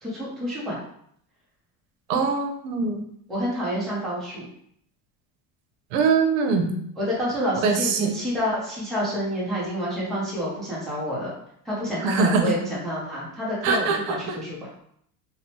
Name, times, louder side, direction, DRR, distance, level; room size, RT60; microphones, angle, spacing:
voice 1, 0.0-0.8 3.3-4.5 7.0-11.3 11.6-14.6, equal, ahead, -8 dB, 0.4 m, -28 dB
voice 2, 2.1-3.0 5.9-6.8 7.6-8.1 12.0-12.5 13.6-14.4, right 5 dB, 85° right, 4 dB, 0.6 m, -23 dB
3.0 x 2.0 x 2.7 m, 0.68 s
cardioid pair, 165°, 40 cm